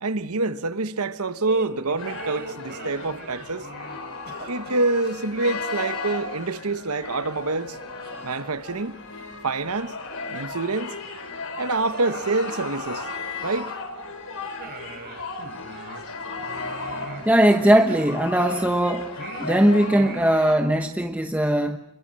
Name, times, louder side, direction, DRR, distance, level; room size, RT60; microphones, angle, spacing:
voice 1, 0.0-3.7 4.5-7.8 8.2-9.0 9.4-10.0 10.3-10.9 11.6-13.1 13.4-13.7, right 3 dB, 80° right, 1.3 m, -26 dB
sound 1, 1.5-6.2 6.4-6.6 7.3-7.4 8.0-9.3 9.7-9.8 10.2-10.8 11.0-11.1 11.7-14.1 14.6-18.8 19.2-20.7, right 3 dB, 45° right, 4.0 m, -42 dB
sound 2, 2.0-20.6, left 3 dB, 65° left, 5.2 m, -35 dB
voice 2, 17.2-19.1 19.4-21.8, right 1 dB, 5° right, 1.1 m, -19 dB
29.0 x 23.0 x 7.6 m
head